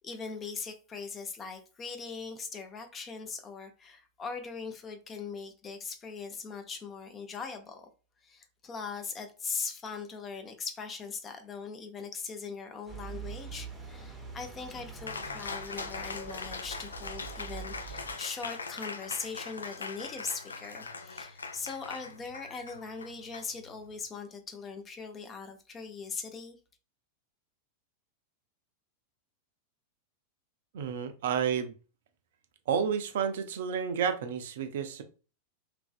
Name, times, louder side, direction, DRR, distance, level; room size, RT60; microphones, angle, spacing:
voice 1, 0.0-7.9 8.2-26.6, left 5 dB, 20° left, 0.5 m, -40 dB
sound 1, 12.9-18.2, right 6 dB, 10° right, 0.8 m, -44 dB
Cheering, 15.1-24.0, left 4 dB, 75° left, 0.3 m, -41 dB
voice 2, 30.7-31.7 32.7-35.0, right 7 dB, 55° right, 0.5 m, -30 dB
3.1 x 2.5 x 2.4 m
figure-of-eight pair, 90°, 0 cm